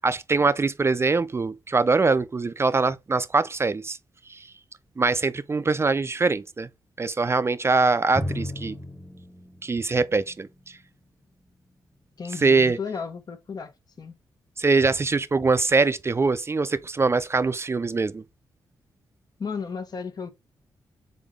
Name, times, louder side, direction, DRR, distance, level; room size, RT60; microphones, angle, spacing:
voice 1, 0.0-4.0 4.3-4.4 5.0-6.7 7.0-8.7 9.6-10.5 12.4-12.8 14.6-18.2, right 3 dB, 30° right, 0.4 m, -23 dB
Drum, 8.2-11.7, left 1 dB, ahead, 1.0 m, -36 dB
voice 2, 12.2-13.7 14.0-14.1 19.4-20.3, left 5 dB, 50° left, 1.0 m, -34 dB
3.9 x 3.6 x 3.6 m
cardioid pair, 55°, 8 cm